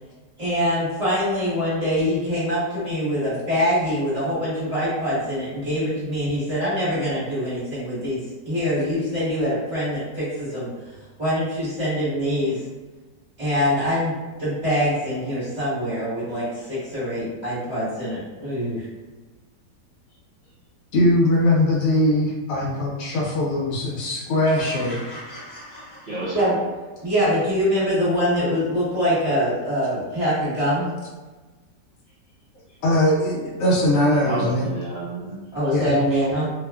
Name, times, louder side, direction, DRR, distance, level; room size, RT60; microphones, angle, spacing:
voice 1, 0.4-10.7 11.2-12.6 13.4-14.1 14.4-18.8 26.3-26.5 27.0-30.9 35.5-36.5, equal, 25° right, -11 dB, 1.2 m, -24 dB
voice 2, 20.9-25.0 32.8-34.7 35.7-35.9, left 1 dB, 70° left, -3 dB, 0.8 m, -21 dB
sound 1, 24.4-26.7, left 1 dB, 35° left, 0.9 m, -40 dB
voice 3, 25.7-26.6 34.2-35.4, right 1 dB, 90° right, -11 dB, 0.4 m, -31 dB
2.8 x 2.3 x 2.2 m, 1.3 s
omnidirectional pair, 1.9 m